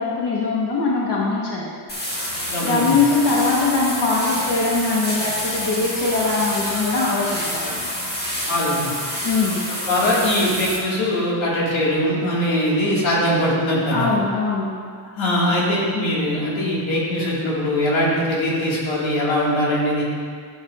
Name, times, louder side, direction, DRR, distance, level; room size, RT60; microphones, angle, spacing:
voice 1, 0.0-1.7 2.6-7.7 9.2-9.6 13.9-14.7, left 3 dB, 60° left, -4 dB, 1.3 m, -21 dB
sound 1, 1.9-10.8, equal, 20° left, 1.7 m, -28 dB
voice 2, 2.5-2.8 8.5-8.9 9.9-14.1 15.2-20.0, left 1 dB, 90° left, -5 dB, 2.0 m, -21 dB
11.0 x 7.3 x 2.4 m, 2.2 s
cardioid pair, 130°, 46 cm